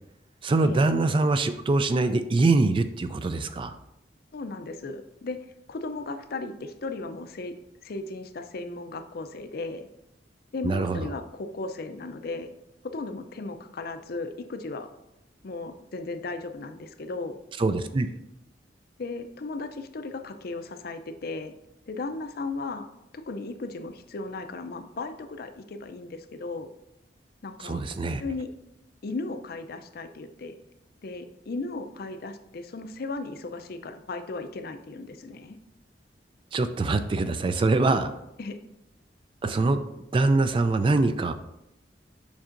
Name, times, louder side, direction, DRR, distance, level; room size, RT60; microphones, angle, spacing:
voice 1, 0.4-3.7 10.6-11.1 17.6-18.1 27.6-28.2 36.5-38.1 39.4-39.8 40.1-41.3, right 3 dB, 30° right, 10 dB, 0.3 m, -23 dB
voice 2, 4.3-5.4 5.7-7.5 7.8-9.9 10.5-12.5 12.8-14.9 15.4-17.4 19.0-21.5 21.9-22.9 23.3-26.7 27.4-27.8 28.2-28.5 29.0-30.5 31.0-35.6 38.4-38.6, left 3 dB, 55° left, 8 dB, 0.5 m, -36 dB
7.2 x 5.3 x 2.5 m, 0.87 s
head